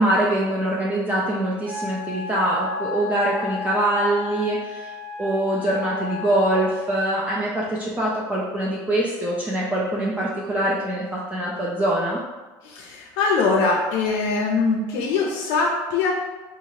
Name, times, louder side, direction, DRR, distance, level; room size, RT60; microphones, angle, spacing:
voice 1, 0.0-4.9 5.2-12.2, right 1 dB, 15° right, -5 dB, 0.4 m, -23 dB
Wind instrument woodwind instrument, 1.6-6.8, left 3 dB, 75° right, 1.4 m, -33 dB
voice 2, 12.6-16.1, left 4 dB, 80° left, -1 dB, 0.4 m, -22 dB
2.7 x 2.4 x 3.0 m, 1.2 s
cardioid pair, 115°, 9 cm